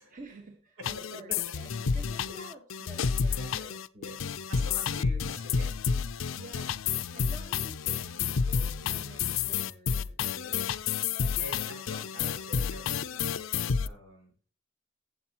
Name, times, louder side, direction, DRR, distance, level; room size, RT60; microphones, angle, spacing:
voice 1, 0.1-3.6 6.4-6.8 7.1-10.2 11.0-12.0, right 2 dB, 40° right, 2 dB, 1.5 m, -50 dB
sound 1, 0.8-13.9, left 6 dB, 85° left, 0.5 m, -30 dB
voice 2, 3.4-4.2 4.5-5.8 10.2-10.8 11.4-13.4 13.8-14.3, equal, 85° right, 2 dB, 6.0 m, -46 dB
15.5 x 7.7 x 3.0 m, 0.40 s
head